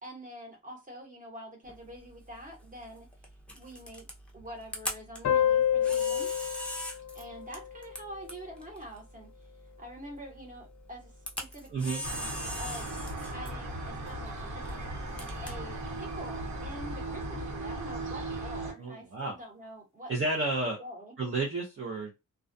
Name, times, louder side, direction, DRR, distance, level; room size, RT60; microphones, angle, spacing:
voice 1, 0.0-3.1 3.5-4.1 4.3-6.3 7.1-9.5 9.8-12.3 12.6-14.8 15.4-20.1 20.5-21.2, equal, 25° right, 1.0 m, -46 dB
Camera, 1.6-17.1, equal, 5° left, 0.5 m, -43 dB
sound 1, 5.2-8.4, left 10 dB, 60° left, 0.4 m, -29 dB
voice 2, 11.7-12.0 18.8-19.4 20.1-20.8 21.2-22.1, right 2 dB, 40° right, 0.6 m, -31 dB
sound 2, 12.0-18.7, right 2 dB, 60° right, 1.3 m, -37 dB
2.3 x 2.2 x 2.5 m
wide cardioid pair, 170°, 32 cm